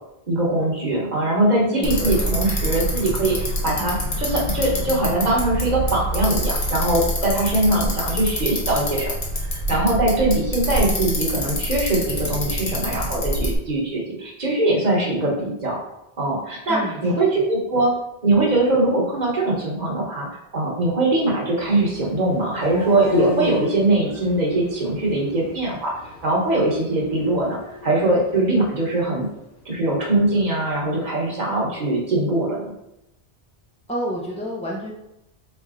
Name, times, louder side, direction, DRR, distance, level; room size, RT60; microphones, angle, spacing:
voice 1, 0.3-9.1 9.4-15.8 16.2-17.9 18.2-25.9 26.2-29.3 29.6-32.6, right 2 dB, 45° right, -3 dB, 1.0 m, -22 dB
voice 2, 1.7-2.3 16.7-17.1 33.9-34.9, equal, 10° left, -5 dB, 0.4 m, -29 dB
Bicycle, 1.8-13.6, equal, 60° left, 1.2 m, -26 dB
sound 1, 21.6-29.5, left 2 dB, 80° left, 1.3 m, -33 dB
4.2 x 3.3 x 2.4 m, 0.88 s
omnidirectional pair, 1.1 m